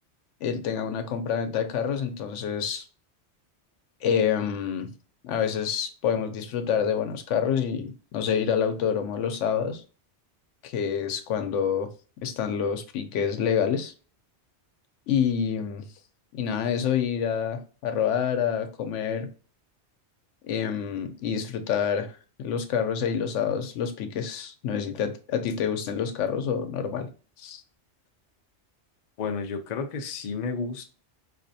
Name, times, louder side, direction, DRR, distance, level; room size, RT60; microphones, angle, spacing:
voice 1, 0.4-2.8 4.0-4.9 5.2-9.8 10.6-11.9 12.2-13.9 15.1-15.9 16.3-19.3 20.4-27.1 27.4-27.6, left 7 dB, 90° left, 0.9 m, -27 dB
voice 2, 29.2-30.8, left 5 dB, 55° left, 0.5 m, -31 dB
4.1 x 2.5 x 2.6 m
omnidirectional pair, 1.2 m